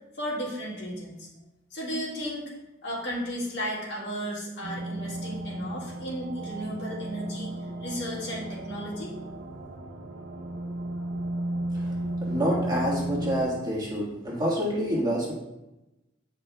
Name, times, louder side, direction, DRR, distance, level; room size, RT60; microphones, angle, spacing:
voice 1, 0.2-1.3 1.7-2.5 2.8-7.5 7.8-9.1, equal, 55° left, -4 dB, 1.8 m, -34 dB
sound 1, 4.6-13.4, right 1 dB, 65° right, 0.6 m, -34 dB
voice 2, 11.7-15.3, equal, 20° right, -5 dB, 1.6 m, -28 dB
9.3 x 5.3 x 2.3 m, 0.98 s
head